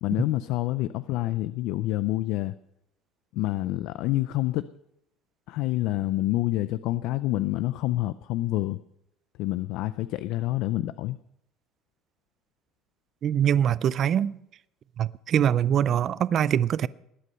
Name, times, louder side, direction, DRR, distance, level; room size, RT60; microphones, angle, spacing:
voice 1, 0.0-2.6 3.3-4.7 5.5-8.8 9.4-11.2, left 16 dB, 65° left, 0.4 m, -27 dB
voice 2, 13.2-14.4 15.0-16.9, right 9 dB, 40° right, 0.4 m, -23 dB
19.5 x 8.3 x 5.5 m
cardioid pair, 160°, 0 cm